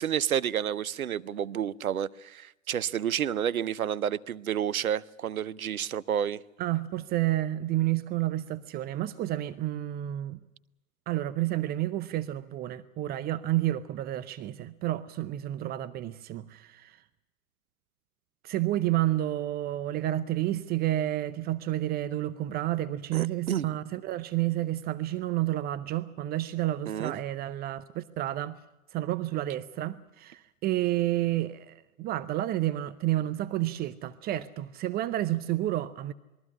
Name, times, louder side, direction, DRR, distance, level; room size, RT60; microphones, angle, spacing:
voice 1, 0.0-6.4 23.1-23.7 26.9-27.1, right 9 dB, 80° right, 0.8 m, -30 dB
voice 2, 6.6-10.4 11.1-17.0 18.4-28.6 28.9-36.1, right 14 dB, 25° right, 0.7 m, -30 dB
22.0 x 14.5 x 9.8 m
hypercardioid pair, 110°, 41 cm